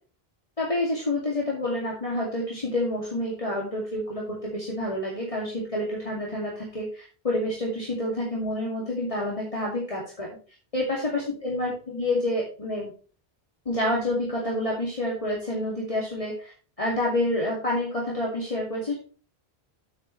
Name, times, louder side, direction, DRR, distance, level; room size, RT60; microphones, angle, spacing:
voice 1, 0.6-10.4 10.7-12.9 13.7-16.5 16.8-18.9, left 1 dB, 35° left, -4 dB, 2.5 m, -28 dB
9.7 x 8.7 x 3.2 m, 0.38 s
omnidirectional pair, 1.0 m